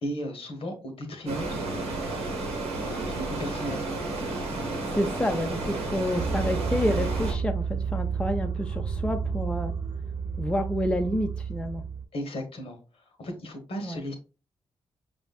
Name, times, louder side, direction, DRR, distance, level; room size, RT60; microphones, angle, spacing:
voice 1, 0.0-2.0 2.8-3.8 12.1-12.8 13.2-14.1, equal, 65° left, 4 dB, 1.0 m, -35 dB
sound 1, 1.3-7.3, right 2 dB, 90° right, 0.9 m, -32 dB
voice 2, 4.9-9.7 10.4-11.8 13.8-14.0, equal, 10° left, 5 dB, 0.5 m, -29 dB
sound 2, 6.1-12.0, right 6 dB, 50° right, 0.7 m, -31 dB
4.9 x 2.5 x 2.3 m, 0.33 s
supercardioid pair, 55°, 10 cm